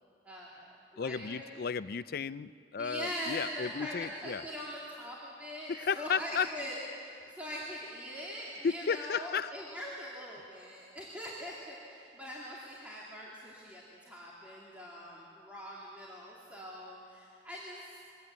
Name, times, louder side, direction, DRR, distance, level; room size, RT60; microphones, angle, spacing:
voice 1, 0.2-1.4 2.8-17.8, equal, 10° right, -6 dB, 2.4 m, -42 dB
voice 2, 1.0-4.4 5.7-6.5 8.6-9.5, left 6 dB, 55° left, 16 dB, 0.4 m, -33 dB
22.5 x 17.5 x 8.1 m, 2.4 s
head